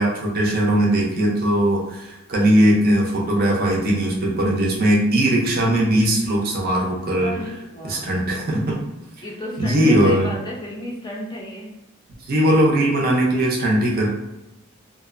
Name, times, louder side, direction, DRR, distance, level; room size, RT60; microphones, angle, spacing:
voice 1, 0.0-7.4 7.8-8.8 9.6-10.3 12.2-14.1, right 1 dB, 45° right, -2 dB, 0.5 m, -19 dB
voice 2, 7.2-8.1 9.2-11.7, left 1 dB, 20° left, -3 dB, 0.5 m, -33 dB
2.5 x 2.0 x 2.4 m, 0.99 s
head